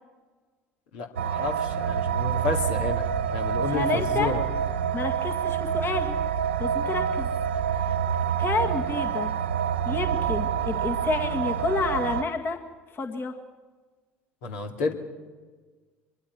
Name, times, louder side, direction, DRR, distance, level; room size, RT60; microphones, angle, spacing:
voice 1, 0.9-3.1 3.3-4.5 14.4-14.9, left 4 dB, 70° left, 2 dB, 2.6 m, -30 dB
sound 1, 1.2-12.2, right 8 dB, 80° right, 0.8 m, -27 dB
voice 2, 3.7-4.3 4.9-6.2 6.6-7.3 8.4-9.3 9.9-12.6 12.9-13.3, left 4 dB, 35° left, 4 dB, 2.0 m, -29 dB
24.5 x 22.5 x 6.2 m, 1.4 s
hypercardioid pair, 65°, 6 cm